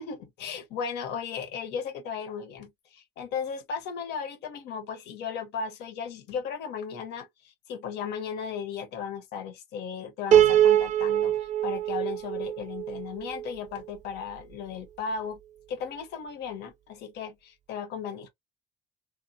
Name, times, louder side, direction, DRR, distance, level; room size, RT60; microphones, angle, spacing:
voice 1, 0.0-15.4 15.7-18.3, left 6 dB, 80° left, 0.8 m, -36 dB
Piano, 10.3-13.5, right 11 dB, 45° right, 0.4 m, -23 dB
3.1 x 2.1 x 2.6 m
cardioid pair, 110°, 17 cm